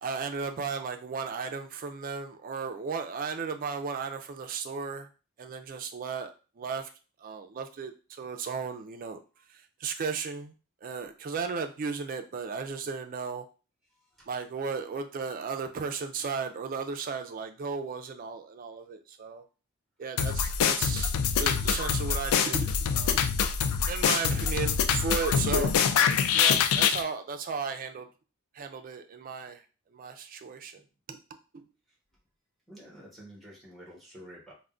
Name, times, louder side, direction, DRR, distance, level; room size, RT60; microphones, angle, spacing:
voice 1, 0.0-5.1 5.4-6.3 6.6-6.9 7.2-7.9 8.2-9.2 9.8-10.5 10.8-13.4 14.3-19.4 20.0-21.1 21.4-23.3 23.9-28.1 28.5-29.6 29.9-30.8 31.1-31.2 31.5-31.6, right 5 dB, 40° right, 7 dB, 0.3 m, -35 dB
voice 2, 13.9-14.3 19.3-19.4 32.7-34.5, equal, ahead, -4 dB, 1.0 m, -50 dB
sound 1, 20.2-27.0, left 7 dB, 85° left, 0.3 m, -25 dB
3.4 x 2.1 x 2.4 m, 0.34 s
head